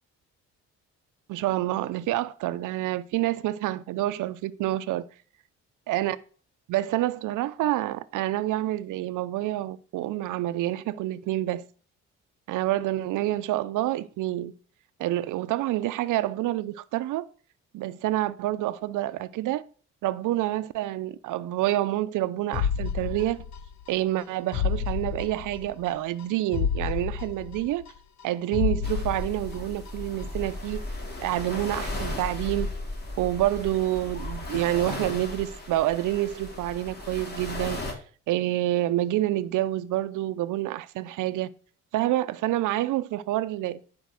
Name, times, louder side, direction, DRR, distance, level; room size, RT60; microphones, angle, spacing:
voice 1, 1.3-5.1 5.9-6.2 6.7-11.7 12.5-14.5 15.0-17.3 17.7-19.6 20.0-23.4 23.9-27.8 28.2-30.8 31.2-32.7 33.2-37.8 38.3-41.5 41.9-43.8, right 15 dB, 85° right, 0.7 m, -28 dB
sound 1, 22.5-23.9 24.2-24.3 24.5-25.9 26.2-26.3 26.5-28.2 28.5-29.9 30.2-30.3, left 7 dB, 65° left, 1.1 m, -30 dB
sound 2, 28.8-37.9, left 2 dB, 35° left, 4.0 m, -35 dB
10.5 x 5.4 x 7.7 m
cardioid pair, 90°, 30 cm